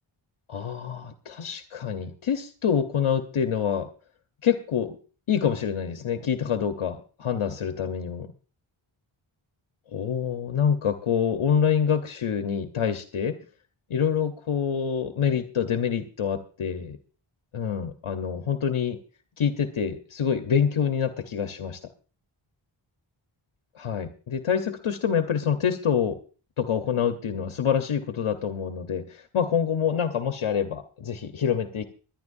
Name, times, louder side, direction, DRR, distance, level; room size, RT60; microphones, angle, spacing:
voice 1, 0.5-3.9 4.4-5.0 5.3-8.3 9.9-13.4 13.9-17.0 17.5-19.0 19.4-21.8 23.7-26.2 26.6-31.8, left 7 dB, 75° left, 7 dB, 1.1 m, -26 dB
22.0 x 11.0 x 2.7 m, 0.37 s
wide cardioid pair, 100°, 50 cm